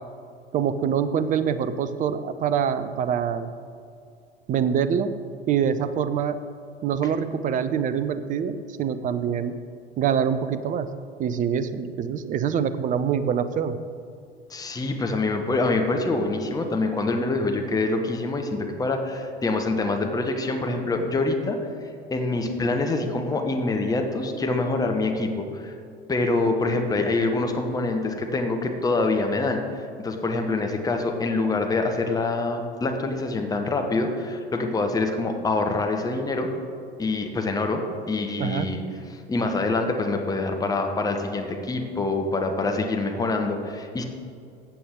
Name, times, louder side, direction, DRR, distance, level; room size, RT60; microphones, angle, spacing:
voice 1, 0.5-3.5 4.5-5.1 5.5-6.4 6.8-9.5 10.0-10.9 11.2-13.8 38.4-38.7, right 8 dB, 25° right, 12 dB, 0.6 m, -25 dB
voice 2, 14.5-21.6 22.1-25.7 26.1-36.5 37.0-38.8 39.1-44.0, left 3 dB, 10° left, 4 dB, 1.1 m, -25 dB
14.0 x 8.5 x 3.6 m, 2.4 s
figure-of-eight pair, 75°, 31 cm